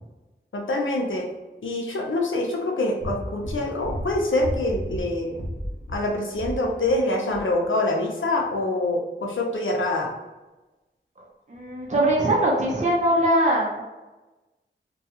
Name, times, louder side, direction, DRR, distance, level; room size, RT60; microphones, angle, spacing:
voice 1, 0.5-1.3 1.6-5.3 5.9-10.1, left 2 dB, 85° left, 0 dB, 0.5 m, -25 dB
sound 1, 3.0-7.0 7.3-7.5, equal, 45° left, 0.8 m, -33 dB
voice 2, 11.5-13.8, right 1 dB, 40° right, -3 dB, 0.6 m, -21 dB
2.7 x 2.2 x 2.8 m, 1.1 s
wide cardioid pair, 40°, 20 cm